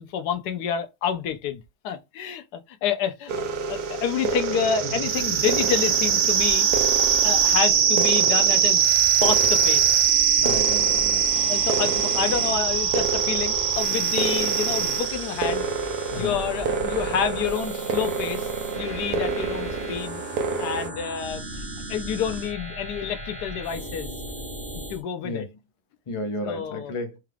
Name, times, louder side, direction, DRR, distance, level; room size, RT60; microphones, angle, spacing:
voice 1, 0.0-6.7 7.0-8.9 9.1-10.0 11.5-15.6 16.2-20.2 20.6-21.6 21.9-24.2 24.7-25.5 26.4-26.9, left 8 dB, 85° left, 1.3 m, -29 dB
sound 1, 3.3-20.9, right 7 dB, 80° right, 1.3 m, -23 dB
sound 2, 5.0-25.0, right 1 dB, 40° right, 0.9 m, -37 dB
voice 2, 10.4-11.2 16.1-16.4 25.2-25.5 26.1-27.2, left 2 dB, 35° left, 0.5 m, -33 dB
4.4 x 2.4 x 3.3 m
omnidirectional pair, 1.7 m